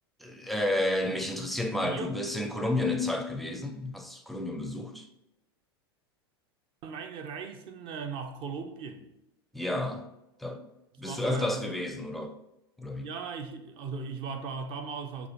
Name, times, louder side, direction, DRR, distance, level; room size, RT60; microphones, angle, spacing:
voice 1, 0.2-5.1 9.5-10.1 10.4-10.6 11.0-12.3 12.8-13.1, left 1 dB, ahead, 0.5 m, -31 dB
voice 2, 6.8-9.1 11.0-11.7 12.9-15.3, right 5 dB, 45° right, 0.6 m, -38 dB
5.9 x 2.4 x 3.0 m
hypercardioid pair, 90°, 13 cm